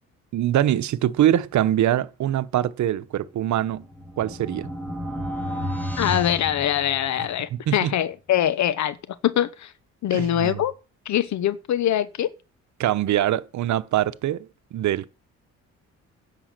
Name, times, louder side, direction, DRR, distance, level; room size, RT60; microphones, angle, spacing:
voice 1, 0.3-3.9 4.2-4.7 7.5-7.9 10.1-10.6 12.8-15.1, right 12 dB, 70° right, 0.9 m, -23 dB
sound 1, 3.4-7.4, equal, 5° left, 3.7 m, -32 dB
voice 2, 6.0-9.0 9.2-9.7 10.0-10.7 11.0-12.3, left 11 dB, 65° left, 0.9 m, -23 dB
10.0 x 8.4 x 6.6 m
cardioid pair, 90°, 30 cm